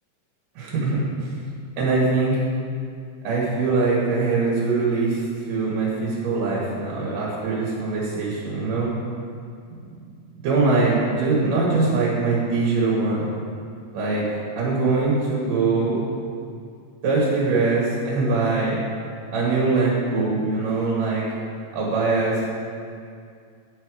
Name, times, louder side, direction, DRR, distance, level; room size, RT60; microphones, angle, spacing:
voice 1, 0.6-1.3 1.8-2.4 3.2-8.9 9.7-10.1 10.4-13.3 13.9-14.3 14.5-16.1 17.0-18.8 19.3-21.3 21.7-22.4, right 3 dB, 75° right, -5 dB, 3.0 m, -22 dB
9.8 x 6.6 x 4.8 m, 2.3 s
omnidirectional pair, 3.8 m